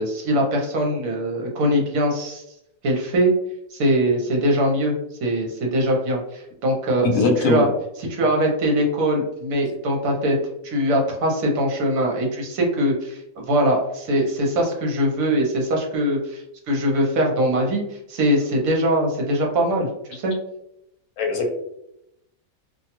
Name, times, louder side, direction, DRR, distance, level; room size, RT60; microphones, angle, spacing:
voice 1, 0.0-2.4 2.8-3.3 3.7-5.0 5.2-7.1 7.4-7.7 8.0-10.4 10.6-20.3, equal, 70° right, 0 dB, 1.2 m, -22 dB
voice 2, 7.0-7.7 21.2-21.5, left 3 dB, 65° left, 2 dB, 0.9 m, -20 dB
2.6 x 2.2 x 2.8 m, 0.80 s
omnidirectional pair, 1.5 m